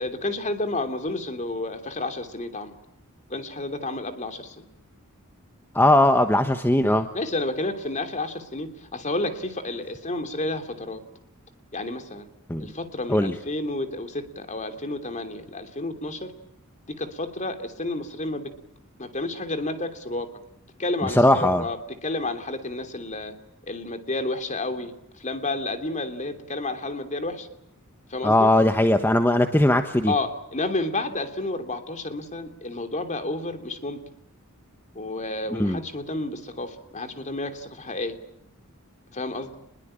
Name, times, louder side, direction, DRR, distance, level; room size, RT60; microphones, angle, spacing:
voice 1, 0.0-2.7 3.3-4.6 7.1-11.0 11.7-12.3 12.6-16.3 16.9-18.5 19.0-20.3 20.8-21.8 22.0-23.3 23.7-27.5 28.1-28.5 30.1-34.0 34.9-38.2 39.1-39.6, left 2 dB, 35° left, 8 dB, 3.0 m, -30 dB
voice 2, 5.7-7.1 12.5-12.7 13.1-13.3 21.0-21.7 28.2-30.1 35.5-35.8, left 1 dB, 10° left, 7 dB, 1.2 m, -19 dB
27.0 x 22.0 x 9.0 m, 0.77 s
head